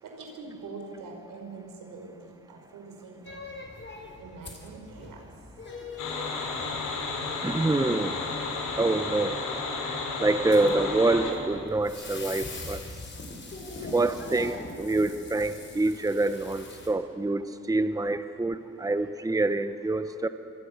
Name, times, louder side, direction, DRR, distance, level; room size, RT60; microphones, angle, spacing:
voice 1, 0.0-3.2 4.2-5.2, right 4 dB, 90° right, 2 dB, 5.2 m, -43 dB
sound 1, 3.2-16.9, left 3 dB, 35° left, 4.8 m, -43 dB
sound 2, 6.0-11.3, left 3 dB, 80° left, 4.9 m, -32 dB
voice 2, 7.4-8.2 8.8-9.4 9.8-12.8 13.9-20.3, right 2 dB, 10° right, 10 dB, 1.0 m, -26 dB
25.0 x 25.0 x 6.7 m, 2.4 s
cardioid pair, 90°, 31 cm